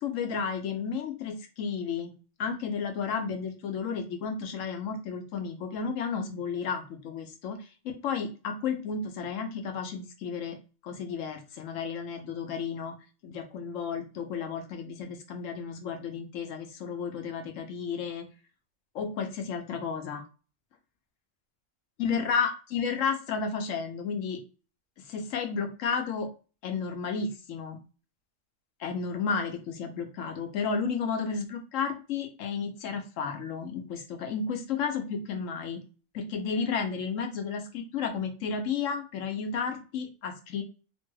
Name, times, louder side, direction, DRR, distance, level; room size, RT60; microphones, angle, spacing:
voice 1, 0.0-2.1 2.4-7.7 8.0-10.6 10.8-12.9 13.2-18.2 18.9-20.2 22.0-24.4 25.1-26.3 26.6-27.8 28.8-35.8 36.1-40.6, left 6 dB, 80° left, 5 dB, 1.0 m, -32 dB
3.0 x 2.2 x 3.1 m, 0.34 s
omnidirectional pair, 1.3 m